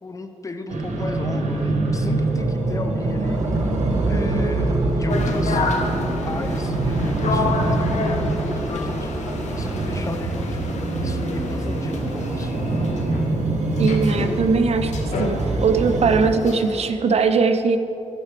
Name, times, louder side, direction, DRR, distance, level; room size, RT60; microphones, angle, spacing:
voice 1, 0.0-3.5 4.0-5.7 6.3-9.2 9.5-10.6 11.0-12.6, left 2 dB, 25° left, 7 dB, 0.7 m, -34 dB
sound 1, 0.7-16.3, right 2 dB, 90° right, 1.2 m, -24 dB
sound 2, 3.2-10.1, right 1 dB, 30° right, 1.2 m, -34 dB
sound 3, 5.1-16.9, left 3 dB, 75° left, 1.0 m, -31 dB
voice 2, 13.8-14.9 15.2-17.8, right 5 dB, 60° right, 8 dB, 0.6 m, -20 dB
14.0 x 5.8 x 4.8 m, 2.8 s
wide cardioid pair, 105°, 12 cm